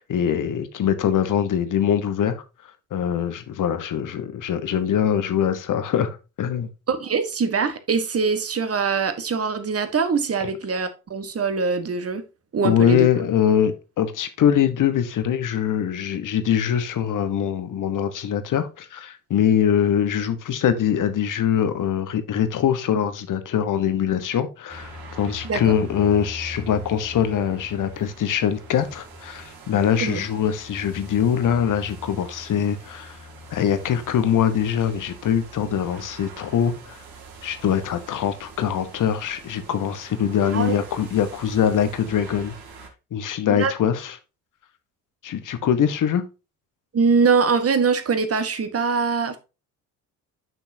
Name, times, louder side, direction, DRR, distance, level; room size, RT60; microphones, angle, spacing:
voice 1, 0.0-2.4 2.9-6.7 12.6-33.2 33.5-37.0 37.4-42.5 43.1-44.1 45.2-46.3, left 9 dB, 45° left, 1.3 m, -23 dB
voice 2, 6.9-12.2 12.5-13.1 25.4-25.7 30.0-30.3 40.5-40.7 43.5-43.7 46.9-49.4, right 5 dB, 30° right, 1.5 m, -23 dB
sound 1, 24.7-42.9, right 1 dB, 50° right, 2.5 m, -42 dB
9.1 x 6.1 x 2.8 m
figure-of-eight pair, 50°, 44 cm